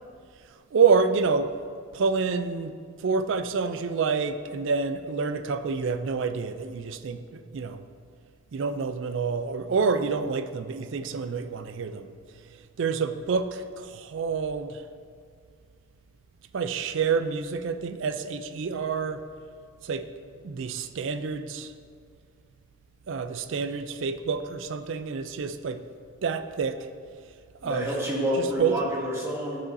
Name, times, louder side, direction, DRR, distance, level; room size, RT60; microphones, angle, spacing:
voice 1, 0.7-1.5 1.9-2.7 3.0-7.8 8.5-12.1 12.8-14.8 16.5-19.2 19.8-20.0 20.4-21.7 23.1-25.8 26.2-26.9 27.6-27.9 28.3-28.8, right 5 dB, 60° right, 10 dB, 0.3 m, -27 dB
voice 2, 27.6-29.6, equal, 10° right, -5 dB, 1.2 m, -28 dB
11.5 x 4.9 x 2.6 m, 2.1 s
head